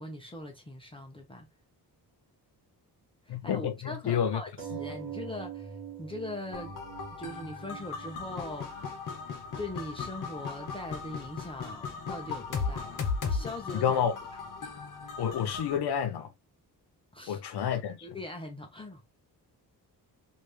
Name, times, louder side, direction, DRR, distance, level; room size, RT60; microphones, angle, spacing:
voice 1, 0.0-1.5 3.3-6.8 7.1-8.9 9.6-14.0 14.6-14.7 17.1-17.4 18.0-19.0, left 2 dB, 15° left, 0.6 m, -41 dB
voice 2, 3.3-4.4 4.7-4.8 13.7-14.1 15.2-16.3 17.3-18.0, left 8 dB, 80° left, 0.8 m, -29 dB
sound 1, 4.6-9.6 10.3-10.4 10.7-10.8, right 8 dB, 30° right, 1.0 m, -44 dB
sound 2, 6.5-15.8, left 5 dB, 55° left, 1.0 m, -37 dB
3.4 x 2.7 x 3.2 m
wide cardioid pair, 170°, 39 cm